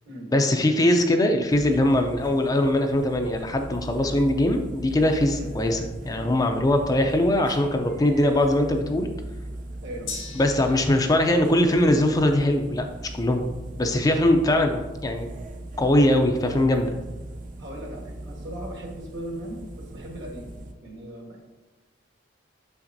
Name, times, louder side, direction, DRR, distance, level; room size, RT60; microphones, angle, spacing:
voice 1, 0.3-5.8 6.0-9.1 10.3-12.9 13.1-13.5 13.8-15.3 15.8-16.9, left 1 dB, 20° left, 5 dB, 0.4 m, -21 dB
sound 1, 1.5-20.7, right 1 dB, 45° right, 0.5 m, -39 dB
voice 2, 9.8-10.1 17.6-20.5 20.8-21.4, right 1 dB, 65° right, 0 dB, 1.4 m, -38 dB
Gong, 10.1-17.8 18.2-18.3, left 4 dB, 90° left, 1.6 m, -45 dB
6.5 x 5.8 x 2.6 m, 1.1 s
head